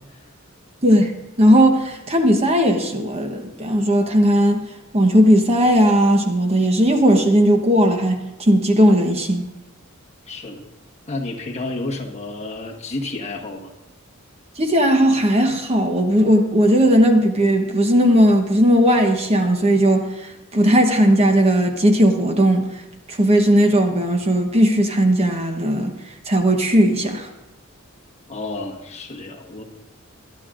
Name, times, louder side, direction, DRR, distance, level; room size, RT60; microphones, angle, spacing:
voice 1, 1.4-4.6 4.9-9.5 14.6-22.6 23.1-25.9 26.3-27.3, equal, 30° right, 1.0 m, -17 dB
voice 2, 10.3-10.6 11.1-13.7 28.3-29.6, left 2 dB, 30° left, 1.4 m, -31 dB
21.5 x 11.5 x 2.5 m
head